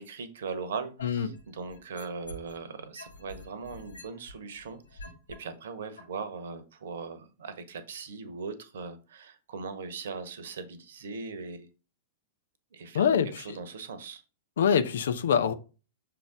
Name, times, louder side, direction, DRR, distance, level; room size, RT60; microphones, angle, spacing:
voice 1, 0.0-5.1 5.4-11.7 12.7-14.2, right 5 dB, 60° right, 1.1 m, -39 dB
sound 1, 1.0-2.6 3.0-5.4 6.0-6.1, left 2 dB, 75° left, 2.4 m, -46 dB
voice 2, 12.9-13.6 14.6-15.5, left 7 dB, 60° left, 0.7 m, -25 dB
6.5 x 4.0 x 3.7 m
figure-of-eight pair, 100°, 0 cm